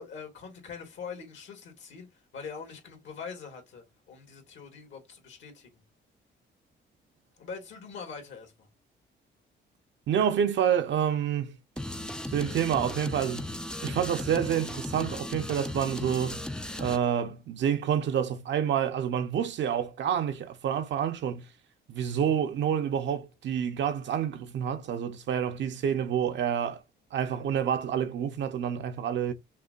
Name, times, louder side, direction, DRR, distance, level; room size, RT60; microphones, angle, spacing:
voice 1, 0.0-5.8 7.4-8.7, left 5 dB, 70° left, 1.9 m, -43 dB
voice 2, 10.1-11.6 12.3-13.5 13.8-16.4 16.8-21.5 21.9-26.8 27.1-29.3, right 8 dB, 65° right, 0.8 m, -28 dB
sound 1, 11.8-17.0, left 1 dB, 5° left, 0.4 m, -36 dB
5.5 x 2.1 x 2.4 m
cardioid pair, 90°, 20 cm